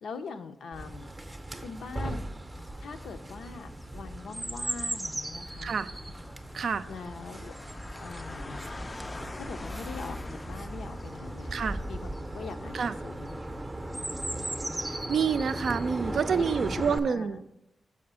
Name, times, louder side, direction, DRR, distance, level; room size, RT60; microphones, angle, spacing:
voice 1, 0.0-2.3 2.8-5.7 6.9-7.5 8.0-8.7 9.4-11.6 11.9-13.6 16.1-16.7 17.0-17.4, left 5 dB, 80° left, 8 dB, 0.5 m, -42 dB
Chirp tweet, 0.7-17.0, right 1 dB, 15° right, 0.6 m, -37 dB
sound 1, 2.5-13.6, left 2 dB, 30° left, 0.3 m, -45 dB
voice 2, 15.1-17.4, right 6 dB, 70° right, 11 dB, 0.4 m, -27 dB
6.7 x 4.9 x 5.4 m, 0.83 s
cardioid pair, 75°, 0 cm